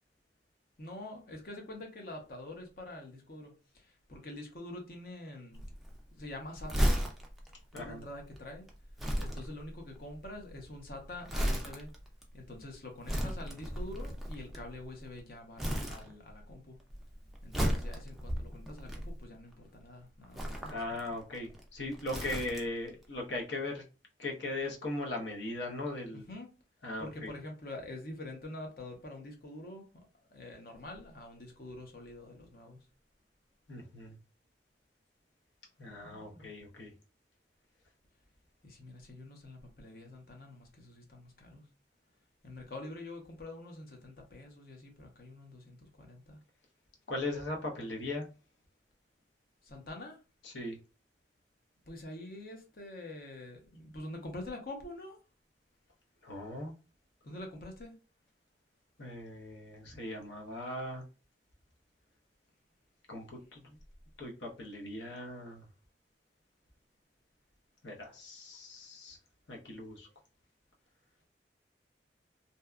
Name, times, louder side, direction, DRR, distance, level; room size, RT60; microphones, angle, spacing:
voice 1, 0.8-5.6 6.1-6.9 7.7-8.7 9.2-11.9 12.3-16.8 17.4-21.1 22.1-22.2 26.1-26.5 27.0-29.8 30.3-32.9 35.8-36.5 38.6-41.7 42.4-46.4 49.6-50.2 51.9-55.2 57.2-57.9, left 1 dB, 55° left, 0.7 m, -46 dB
Crumpling crinkling, 5.5-15.2 15.6-16.5 16.8-19.5 20.2-22.9 23.2-23.3, equal, ahead, 0.3 m, -35 dB
voice 2, 7.7-8.0 20.6-23.8 24.2-26.3 26.8-27.3 33.7-34.2 35.8-36.9 47.1-48.3 50.4-50.8 56.2-56.7 59.0-61.0 63.1-63.8 64.2-65.7 67.8-69.2 69.5-70.1, left 2 dB, 85° left, 0.8 m, -39 dB
2.7 x 2.2 x 2.3 m
head